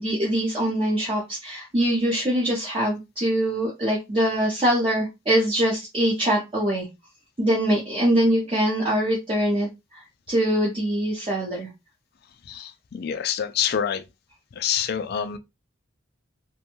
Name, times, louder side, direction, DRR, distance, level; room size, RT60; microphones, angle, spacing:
voice 1, 0.0-6.9 7.4-11.7, right 1 dB, 25° right, 0.6 m, -23 dB
voice 2, 12.5-14.0 14.6-15.4, left 8 dB, 50° left, 0.3 m, -26 dB
2.5 x 2.2 x 2.9 m
head